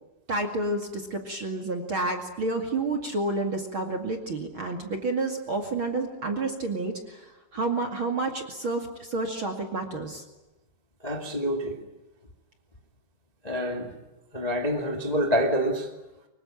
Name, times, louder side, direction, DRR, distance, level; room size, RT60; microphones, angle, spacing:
voice 1, 0.3-10.2, right 2 dB, 45° right, 1.8 m, -30 dB
voice 2, 11.0-11.8 13.4-13.9 14.3-15.9, equal, 55° left, 0.4 m, -27 dB
25.0 x 23.0 x 9.0 m
omnidirectional pair, 5.7 m